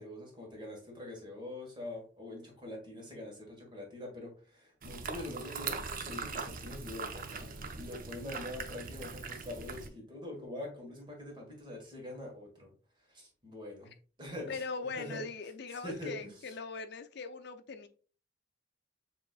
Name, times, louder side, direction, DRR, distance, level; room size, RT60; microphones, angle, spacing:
voice 1, 0.0-12.7 13.1-13.9 14.2-14.6 14.9-15.2 15.8-16.3, left 1 dB, 25° right, 1.7 m, -44 dB
sound 1, 4.8-9.9, right 4 dB, 50° right, 0.6 m, -41 dB
voice 2, 14.5-17.9, left 4 dB, 60° left, 0.6 m, -40 dB
7.0 x 3.1 x 2.4 m
head